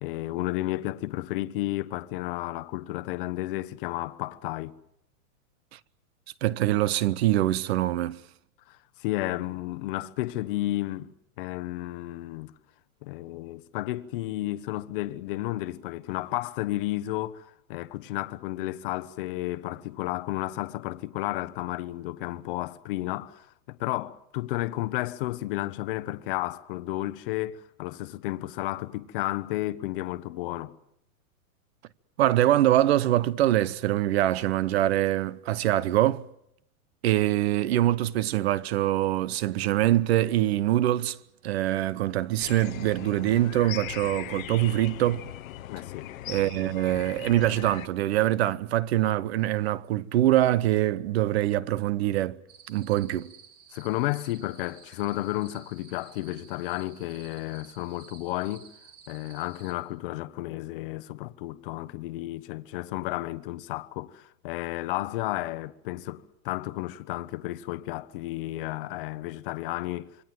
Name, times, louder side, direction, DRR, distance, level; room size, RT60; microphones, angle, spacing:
voice 1, 0.0-4.8 8.7-12.5 13.0-30.8 45.7-46.1 53.7-58.7 59.1-70.2, left 17 dB, 40° left, 1.1 m, -32 dB
voice 2, 6.4-8.2 32.2-36.2 37.0-41.2 41.4-45.2 46.3-52.4 52.7-53.3, right 14 dB, 45° right, 0.9 m, -24 dB
sound 1, 42.4-47.9, left 14 dB, 65° left, 1.1 m, -39 dB
sound 2, 52.5-59.7, right 7 dB, 20° right, 2.4 m, -53 dB
27.0 x 23.0 x 7.8 m
supercardioid pair, 165°, 43 cm